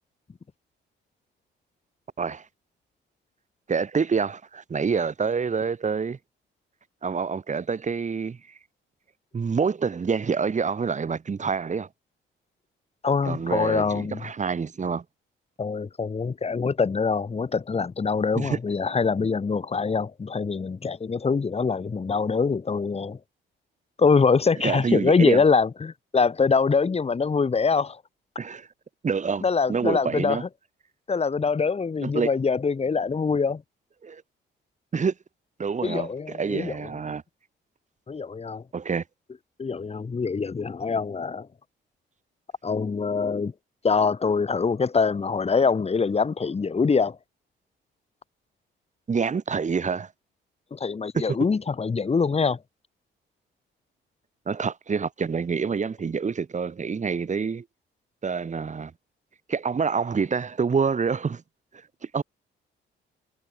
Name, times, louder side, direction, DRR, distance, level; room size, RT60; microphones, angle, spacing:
voice 1, 3.7-6.2 7.0-8.4 9.3-11.9 13.2-15.0 18.4-18.6 24.6-25.4 28.4-28.7 29.0-30.4 32.0-32.3 34.0-34.2 34.9-35.1 35.6-37.2 38.7-39.0 49.1-50.1 51.1-51.2 54.5-57.6 58.2-58.9 59.5-61.4 62.1-62.2, right 5 dB, 35° right, 3.6 m, -27 dB
voice 2, 13.0-14.2 15.6-23.2 24.0-28.0 29.4-30.5 31.1-33.6 35.8-36.8 38.1-38.6 39.6-41.5 42.6-43.5 43.8-47.2 50.7-52.6, left 5 dB, 30° left, 2.6 m, -24 dB
cardioid pair, 90°, 20 cm